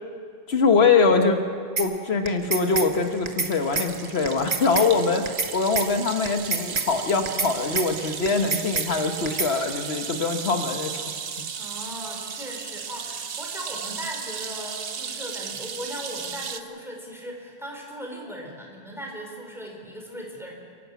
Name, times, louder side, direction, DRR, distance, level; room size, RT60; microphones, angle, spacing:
voice 1, 0.5-1.4 1.8-5.3 5.5-11.1, left 4 dB, 85° left, 6 dB, 1.4 m, -23 dB
sound 1, 1.8-1.9 2.3-2.9 3.3-3.5 3.8-3.9 4.3-4.9 5.3-5.5 5.8-5.9 6.3-6.9 7.3-7.5 7.8-7.9 8.3-8.9 9.3-9.5, right 4 dB, 40° right, 1.4 m, -26 dB
sound 2, 2.4-16.6, right 7 dB, 65° right, 1.1 m, -35 dB
voice 2, 11.5-20.5, equal, ahead, 0 dB, 4.0 m, -38 dB
28.5 x 12.0 x 8.3 m, 2.2 s
omnidirectional pair, 1.0 m